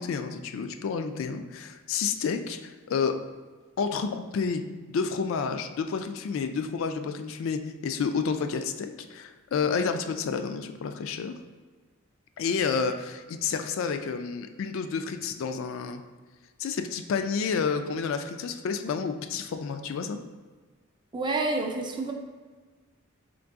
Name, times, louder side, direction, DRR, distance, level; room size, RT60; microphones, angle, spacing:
voice 1, 0.0-3.2 3.8-4.6 4.9-11.4 12.4-16.0 16.6-20.2, left 5 dB, 65° left, 8 dB, 0.3 m, -30 dB
voice 2, 21.1-22.1, right 2 dB, 20° right, 3 dB, 0.4 m, -28 dB
3.8 x 3.2 x 3.5 m, 1.4 s
head